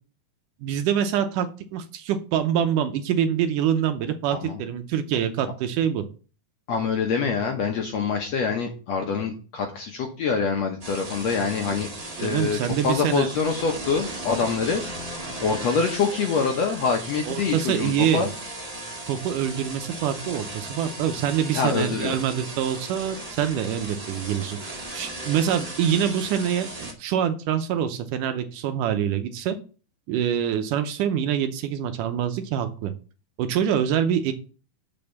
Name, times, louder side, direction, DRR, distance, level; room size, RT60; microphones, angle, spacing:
voice 1, 0.6-6.0 11.7-11.8 12.2-13.3 17.3-18.3 19.1-29.6 30.1-32.9 33.4-34.3, right 9 dB, 75° right, 8 dB, 2.2 m, -25 dB
voice 2, 4.3-4.6 6.7-11.9 12.2-14.8 15.4-18.3 21.5-22.2 25.0-25.1, left 5 dB, 65° left, 3 dB, 1.7 m, -25 dB
sound 1, 10.8-26.9, right 1 dB, 25° right, 0.7 m, -37 dB
6.9 x 5.4 x 6.9 m, 0.36 s
omnidirectional pair, 4.0 m